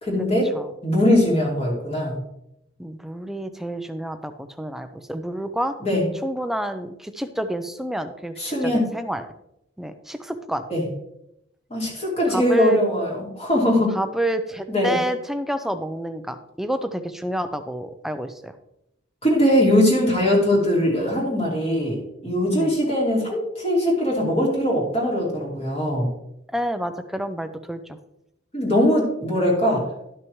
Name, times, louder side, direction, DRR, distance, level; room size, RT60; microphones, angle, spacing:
voice 1, 0.0-0.5 0.8-2.2 5.8-6.1 8.4-8.9 10.7-10.8 11.7-14.0 14.7-15.0 19.2-22.0 22.2-26.1 28.5-29.8, left 1 dB, 30° left, -3 dB, 2.5 m, -21 dB
voice 2, 2.8-4.3 4.6-5.7 6.2-9.3 9.8-10.6 12.3-12.8 13.9-18.6 22.5-22.7 26.5-28.0, right 1 dB, ahead, 8 dB, 0.5 m, -29 dB
12.0 x 6.1 x 3.1 m, 0.81 s
head